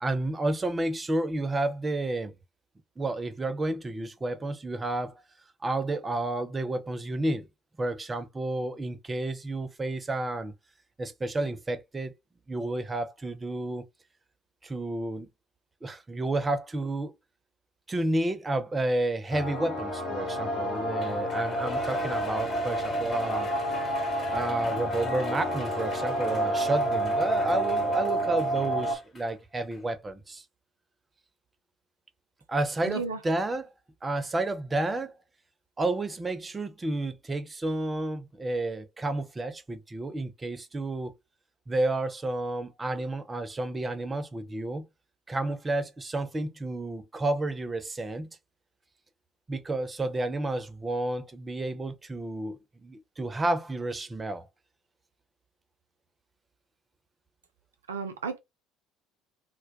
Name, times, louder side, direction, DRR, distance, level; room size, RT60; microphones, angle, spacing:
voice 1, 0.0-2.3 3.0-5.1 5.6-7.5 7.8-10.5 11.0-12.1 12.5-13.8 14.6-15.3 15.8-17.1 17.9-23.5 24.3-30.4 32.5-33.7 34.0-35.1 35.8-41.1 41.7-44.9 45.3-48.3 49.5-54.5, right 2 dB, 20° right, 0.4 m, -31 dB
sound 1, 19.3-29.0, right 1 dB, 65° left, 0.9 m, -29 dB
Shout / Cheering, 21.0-29.3 29.7-29.8, left 2 dB, 40° left, 1.0 m, -38 dB
voice 2, 32.8-33.2 57.9-58.4, right 4 dB, 80° right, 0.4 m, -33 dB
2.2 x 2.1 x 2.7 m
figure-of-eight pair, 55°, 0 cm